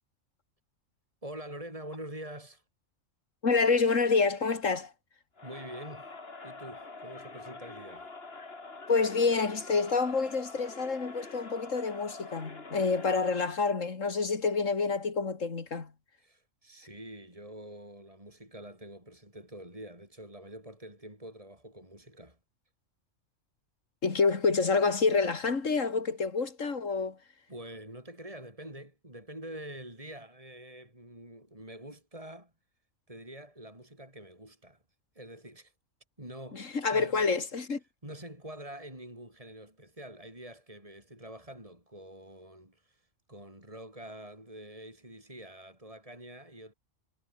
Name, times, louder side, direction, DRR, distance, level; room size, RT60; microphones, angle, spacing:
voice 1, 1.2-2.6 5.4-6.1 6.4-8.1 16.2-22.4 27.5-32.5 33.1-34.8 35.1-35.7 36.2-37.3 38.0-46.7, right 1 dB, 25° right, 7.2 m, -46 dB
voice 2, 3.4-4.9 8.9-15.9 24.0-27.2 36.5-37.8, left 4 dB, 85° left, 2.7 m, -28 dB
Crowd, 5.4-13.5, left 3 dB, 50° left, 2.8 m, -46 dB
omnidirectional pair, 1.3 m